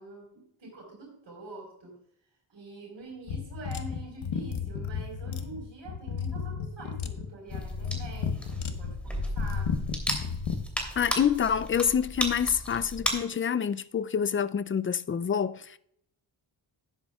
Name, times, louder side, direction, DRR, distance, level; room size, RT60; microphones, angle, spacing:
voice 1, 0.0-1.9 2.5-9.7, right 2 dB, 70° right, 4.6 m, -45 dB
sound 1, 3.3-10.6, left 6 dB, 85° left, 1.1 m, -33 dB
sound 2, 7.5-13.1, equal, 5° left, 2.9 m, -34 dB
voice 2, 11.0-15.8, left 7 dB, 30° left, 0.3 m, -27 dB
12.5 x 10.5 x 2.3 m
wide cardioid pair, 90°, 47 cm